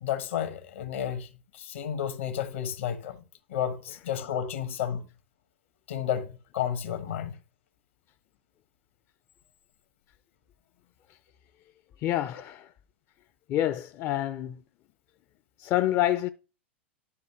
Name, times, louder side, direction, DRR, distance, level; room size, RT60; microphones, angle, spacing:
voice 1, 0.0-1.3 1.5-3.2 3.5-5.0 5.9-7.4, left 9 dB, 75° left, 1.2 m, -31 dB
voice 2, 12.0-12.7 13.5-14.6 15.6-16.3, left 13 dB, 40° left, 0.4 m, -27 dB
11.5 x 5.2 x 3.2 m
hypercardioid pair, 90°, 7 cm